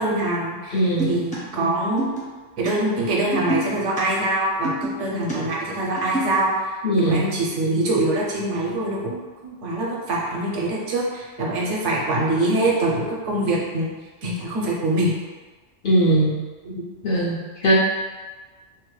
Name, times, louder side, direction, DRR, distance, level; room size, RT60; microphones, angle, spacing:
voice 1, 0.0-2.1 2.6-6.7 7.0-13.9 14.2-15.1 16.6-16.7, right 2 dB, 75° right, -3 dB, 1.0 m, -24 dB
voice 2, 0.7-1.2 6.8-7.3 15.8-16.4 17.0-17.7, right 1 dB, 60° left, -7 dB, 0.6 m, -20 dB
sound 1, 1.0-1.4 2.0-2.3 2.6-2.7 3.3-4.0 4.6-5.4 5.8-6.4, equal, 10° left, 0.4 m, -28 dB
2.7 x 2.2 x 3.0 m, 1.3 s
omnidirectional pair, 1.3 m